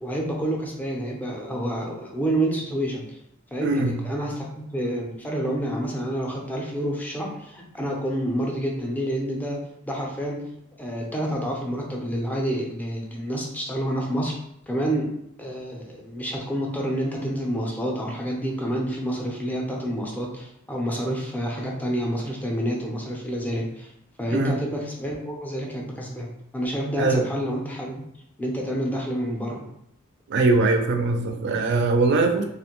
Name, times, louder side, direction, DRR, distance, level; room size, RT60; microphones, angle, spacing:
voice 1, 0.0-3.2 3.5-9.6 9.9-10.4 10.8-14.3 14.7-15.1 15.4-23.9 24.2-28.0 28.4-29.7, right 1 dB, 10° left, -1 dB, 0.4 m, -28 dB
voice 2, 3.6-4.0 24.3-24.6 27.0-27.2 30.3-32.4, right 3 dB, 55° right, 4 dB, 0.4 m, -21 dB
2.4 x 2.1 x 2.9 m, 0.76 s
head